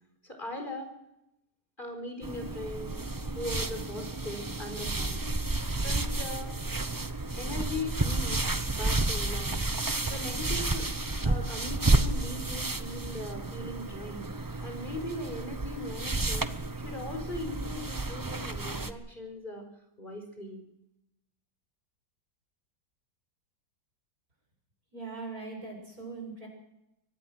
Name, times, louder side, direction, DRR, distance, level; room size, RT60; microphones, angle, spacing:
voice 1, 0.2-0.9 1.8-3.0 3.2-5.2 5.7-6.5 7.4-8.5 8.8-9.6 10.0-10.9 11.2-14.3 14.6-19.7 20.0-20.6, left 1 dB, 25° left, 4 dB, 4.7 m, -39 dB
sound 1, 2.2-18.9, right 2 dB, 20° right, 0.6 m, -31 dB
voice 2, 24.9-26.5, right 4 dB, 50° right, 2 dB, 7.3 m, -40 dB
24.0 x 17.5 x 6.3 m, 0.84 s
omnidirectional pair, 1.9 m